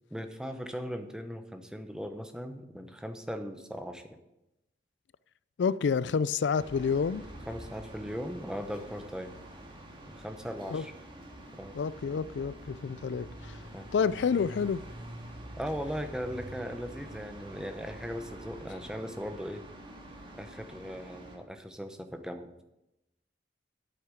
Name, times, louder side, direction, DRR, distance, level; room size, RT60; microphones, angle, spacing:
voice 1, 0.1-4.2 7.5-9.3 10.1-10.9 11.6-11.8 13.7-13.9 15.6-19.6 20.3-22.6, equal, 5° right, 0.9 m, -38 dB
voice 2, 5.6-7.3 10.7-10.8 11.7-13.6 13.9-14.8, left 6 dB, 80° left, 0.4 m, -29 dB
sound 1, 6.6-21.4, right 1 dB, 25° right, 2.0 m, -46 dB
8.7 x 8.2 x 7.7 m
head